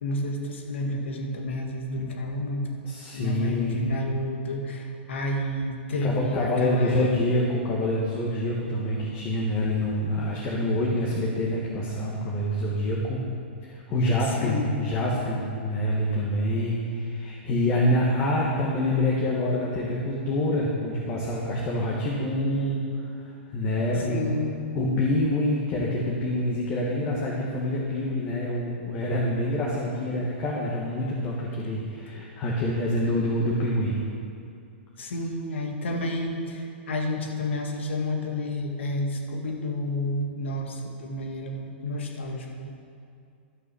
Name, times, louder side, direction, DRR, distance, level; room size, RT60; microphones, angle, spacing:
voice 1, 0.0-2.7 3.1-7.2 14.2-14.8 24.1-24.6 32.1-32.2 35.0-42.7, left 1 dB, 90° left, 2 dB, 1.9 m, -30 dB
voice 2, 2.8-3.8 6.0-13.2 13.6-22.8 23.2-24.3 24.7-34.0, left 1 dB, 30° left, -4 dB, 1.5 m, -26 dB
12.5 x 6.1 x 7.0 m, 2.4 s
hypercardioid pair, 150°, 6 cm